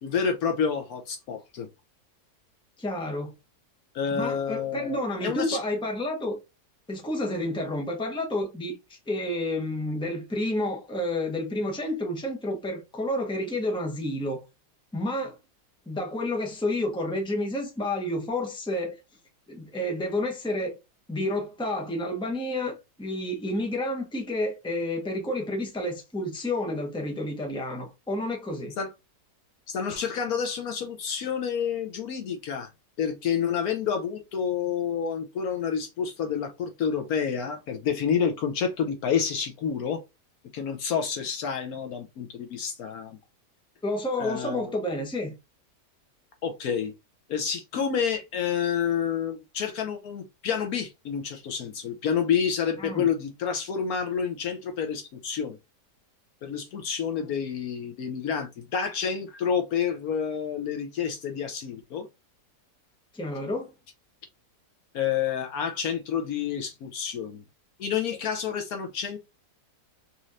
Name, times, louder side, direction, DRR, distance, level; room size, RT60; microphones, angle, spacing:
voice 1, 0.0-1.7 3.9-5.6 28.8-28.9 29.7-32.7 33.0-40.0 40.5-43.2 44.2-44.8 46.4-46.9 47.3-55.6 56.4-62.1 64.9-67.4 67.8-69.2, left 7 dB, 70° left, 1.1 m, -29 dB
voice 2, 2.8-3.3 4.1-6.4 6.9-8.8 9.1-14.4 14.9-15.4 15.9-19.0 19.5-20.8 21.1-28.7 43.8-45.3 52.8-53.1 57.2-57.3 63.1-63.7, left 1 dB, 5° left, 0.9 m, -30 dB
4.2 x 3.0 x 2.5 m
omnidirectional pair, 1.8 m